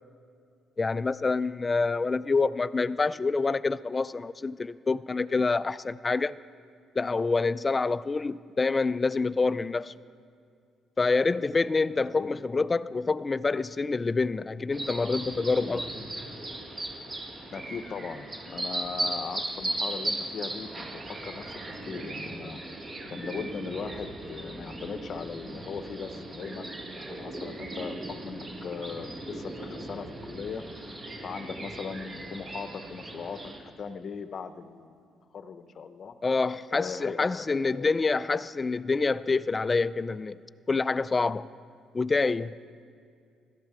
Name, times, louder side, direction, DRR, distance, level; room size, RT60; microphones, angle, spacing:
voice 1, 0.8-6.4 7.0-9.9 11.0-15.9 36.2-40.4 40.7-41.5 41.9-42.5, left 4 dB, 25° left, 0.3 m, -27 dB
sound 1, 14.7-33.6, right 1 dB, 35° right, 2.0 m, -37 dB
voice 2, 17.5-22.6 23.1-27.9 28.2-30.6 31.2-35.0 35.3-36.1 36.7-37.4 37.7-37.9, left 6 dB, 50° left, 0.7 m, -39 dB
16.5 x 13.0 x 4.9 m
cardioid pair, 95°, 0 cm